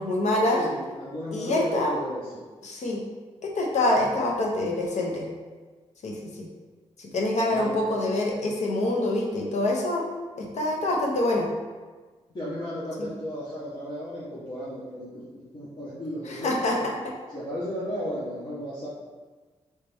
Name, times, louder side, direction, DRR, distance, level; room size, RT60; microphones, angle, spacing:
voice 1, 0.0-0.6 1.3-2.0 2.6-3.0 3.4-5.3 6.0-6.5 7.0-10.0 10.3-11.5 13.0-13.1 16.2-16.8 17.0-17.1, left 1 dB, 75° left, -1 dB, 0.8 m, -26 dB
voice 2, 0.5-2.4 7.5-7.8 12.3-15.2 15.5-16.9 17.3-18.9, equal, 40° left, -10 dB, 1.0 m, -34 dB
4.3 x 3.2 x 3.4 m, 1.4 s
wide cardioid pair, 155°, 12 cm